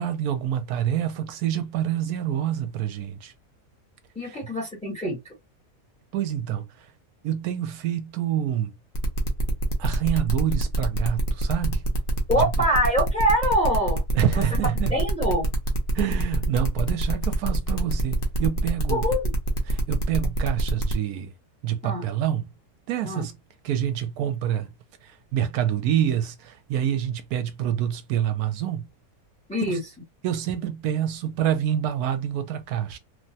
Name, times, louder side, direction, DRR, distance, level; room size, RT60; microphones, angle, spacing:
voice 1, 0.0-3.3 4.2-4.4 6.1-6.9 7.2-8.7 9.8-11.8 12.3-12.6 14.1-15.0 15.9-19.2 19.7-21.3 21.6-22.5 22.9-23.4 23.6-24.7 25.0-28.9 29.7-29.8 30.2-33.0, right 10 dB, 80° right, 1.1 m, -27 dB
voice 2, 4.1-5.2 12.3-14.0 14.9-15.4 18.9-19.2 21.8-22.0 23.0-23.2 29.5-29.8, equal, 5° left, 0.9 m, -24 dB
sound 1, 8.9-20.9, right 2 dB, 45° left, 0.8 m, -27 dB
3.0 x 2.2 x 2.6 m
omnidirectional pair, 1.6 m